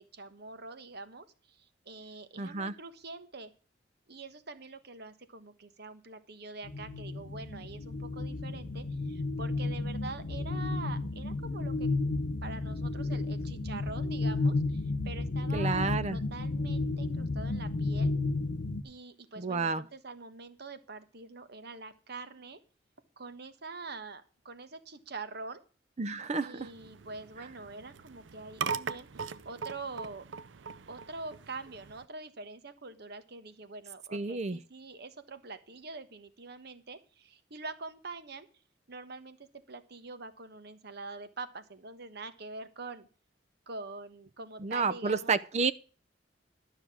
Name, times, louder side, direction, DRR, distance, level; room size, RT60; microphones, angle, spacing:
voice 1, 0.0-3.5 4.1-11.9 12.4-18.1 18.8-22.6 23.2-25.6 26.4-30.3 30.9-38.5 38.9-43.1 43.7-45.4, right 3 dB, 60° right, 1.3 m, -45 dB
voice 2, 2.4-2.7 15.5-16.2 19.4-19.8 26.0-26.7 34.1-34.6 44.6-45.7, right 4 dB, 40° right, 0.5 m, -30 dB
sound 1, 6.6-18.8, left 2 dB, 75° left, 0.9 m, -32 dB
sound 2, 26.6-32.1, right 6 dB, 85° right, 0.6 m, -40 dB
12.0 x 6.5 x 6.1 m
head